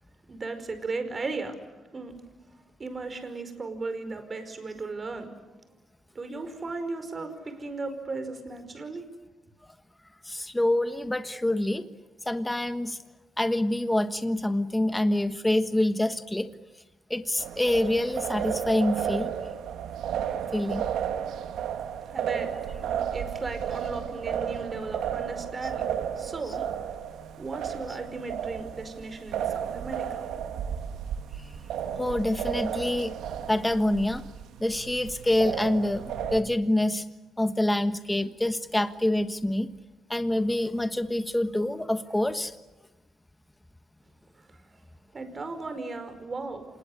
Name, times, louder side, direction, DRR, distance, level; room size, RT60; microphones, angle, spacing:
voice 1, 0.3-1.6 1.9-2.1 2.8-5.3 6.1-9.1 22.1-22.5 22.8-25.9 26.2-27.0 27.4-30.3 44.4-44.6 45.1-46.6, right 3 dB, 35° right, 9 dB, 5.1 m, -36 dB
voice 2, 10.2-11.9 12.2-13.0 13.4-16.5 17.1-19.3 20.5-20.9 32.0-33.1 33.5-34.2 34.6-37.0 37.4-39.7 40.1-42.5, left 1 dB, 10° left, 10 dB, 1.4 m, -26 dB
sound 1, 17.4-36.4, right 9 dB, 80° right, 1.8 m, -33 dB
27.0 x 20.5 x 10.0 m, 1.1 s
cardioid pair, 90°, 0 cm